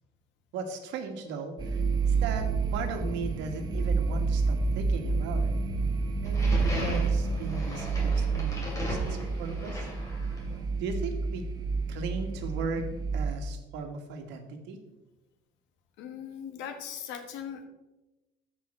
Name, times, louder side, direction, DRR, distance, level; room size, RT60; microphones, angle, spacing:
voice 1, 0.5-5.5 6.2-9.9 10.8-11.5 11.9-12.8 13.1-14.8, right 4 dB, 75° right, 5 dB, 1.5 m, -37 dB
sound 1, 1.6-13.3, right 4 dB, 20° right, 0.7 m, -29 dB
sound 2, 6.2-10.6, equal, 15° left, 2.7 m, -36 dB
voice 2, 16.0-17.7, left 8 dB, 80° left, 6 dB, 1.5 m, -39 dB
14.5 x 5.4 x 4.3 m, 1.0 s
cardioid pair, 180°, 19 cm